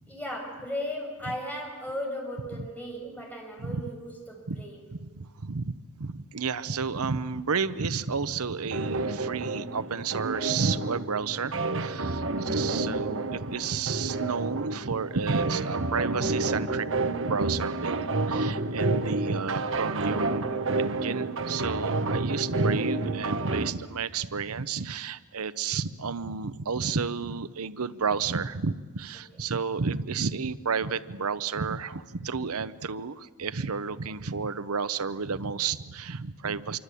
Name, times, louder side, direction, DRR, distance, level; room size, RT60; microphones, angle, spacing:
voice 1, 0.1-4.9 12.2-12.6 29.3-29.4 33.9-34.1, left 1 dB, 5° left, 0 dB, 6.4 m, -37 dB
voice 2, 5.0-18.0 18.3-36.8, right 5 dB, 80° right, 14 dB, 0.8 m, -31 dB
sound 1, 8.7-23.7, right 2 dB, 60° right, 1.3 m, -29 dB
26.5 x 24.5 x 8.4 m, 1.4 s
head